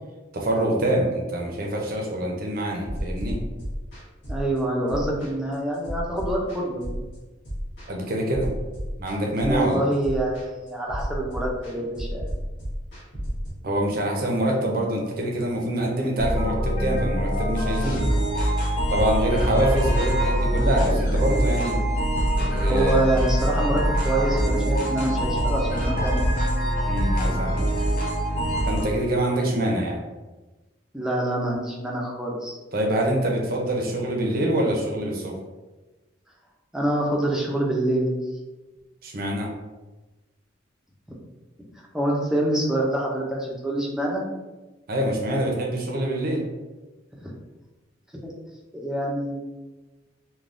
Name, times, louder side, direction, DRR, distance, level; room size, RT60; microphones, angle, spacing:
voice 1, 0.3-3.4 7.9-8.6 9.0-9.9 13.6-18.0 18.9-21.8 22.4-23.0 26.9-27.7 28.6-30.0 32.7-35.4 39.0-39.5 44.9-46.4, right 1 dB, 50° right, 0 dB, 0.6 m, -25 dB
sound 1, 2.8-13.5, equal, 65° left, 1.3 m, -33 dB
voice 2, 4.3-7.0 9.5-12.4 22.7-26.3 30.9-32.6 36.7-38.2 41.9-44.3 47.2-47.3 48.2-48.3 48.7-49.5, right 1 dB, 5° right, -3 dB, 0.4 m, -26 dB
sound 2, 16.2-28.9, equal, 45° left, 0.6 m, -23 dB
3.3 x 2.2 x 2.5 m, 1.1 s
head